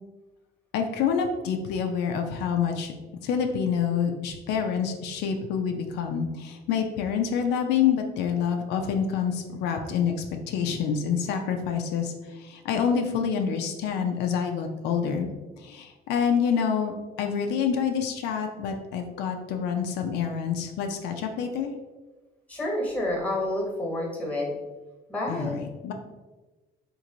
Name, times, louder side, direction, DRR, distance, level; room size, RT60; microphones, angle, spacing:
voice 1, 0.7-2.9 3.2-21.7 25.3-25.9, left 7 dB, 85° left, 4 dB, 0.4 m, -27 dB
voice 2, 22.5-24.6 25.1-25.6, left 1 dB, 10° left, -1 dB, 1.1 m, -29 dB
3.0 x 2.5 x 3.7 m, 1.2 s
cardioid pair, 110°, 17 cm